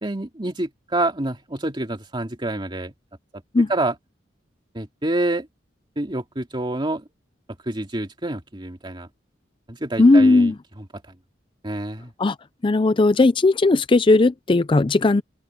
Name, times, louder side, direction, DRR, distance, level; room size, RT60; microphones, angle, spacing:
voice 1, 0.0-2.9 3.7-4.0 4.7-5.5 6.0-7.0 7.7-9.1 9.7-10.9 11.6-12.1, right 2 dB, 25° right, 2.4 m, -27 dB
voice 2, 10.0-10.5 12.2-12.4 12.6-15.2, left 2 dB, 25° left, 0.5 m, -16 dB
open air
head